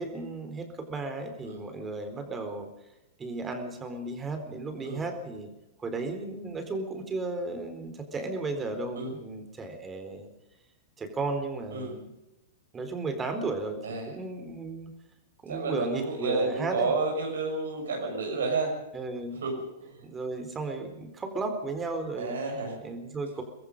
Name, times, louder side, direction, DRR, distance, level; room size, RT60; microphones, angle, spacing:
voice 1, 0.0-2.7 3.2-5.5 5.8-10.3 11.0-12.1 12.7-14.9 15.4-16.9 18.9-19.4 20.0-22.4 22.8-23.4, right 3 dB, 15° right, 7 dB, 4.1 m, -34 dB
voice 2, 13.8-14.2 15.5-18.7 19.4-19.5 19.8-19.9 22.2-22.8, right 3 dB, 65° right, 2 dB, 6.5 m, -30 dB
23.5 x 22.0 x 5.4 m, 0.95 s
figure-of-eight pair, 100°, 0 cm